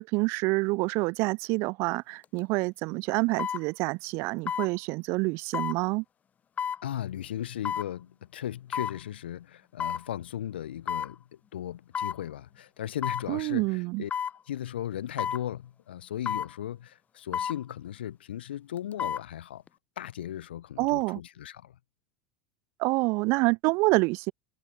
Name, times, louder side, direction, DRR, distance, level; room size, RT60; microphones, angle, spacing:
voice 1, 0.0-6.0 13.3-14.0 20.8-21.2 22.8-24.3, right 26 dB, 50° right, 0.3 m, -27 dB
sound 1, 2.2-2.4 3.4-3.6 4.5-4.7 5.5-5.8 6.6-6.8 7.7-7.9 8.7-9.0 9.8-10.1 10.9-11.1 11.9-12.2 13.0-13.3 14.1-14.4 15.2-15.4 16.3-16.5 17.3-17.6 18.8-19.3 19.7-19.8, left 8 dB, 25° left, 0.7 m, -31 dB
voice 2, 6.8-11.2 11.5-14.1 14.5-19.6 20.0-21.8, left 11 dB, 70° left, 1.2 m, -37 dB
figure-of-eight pair, 80°, 6 cm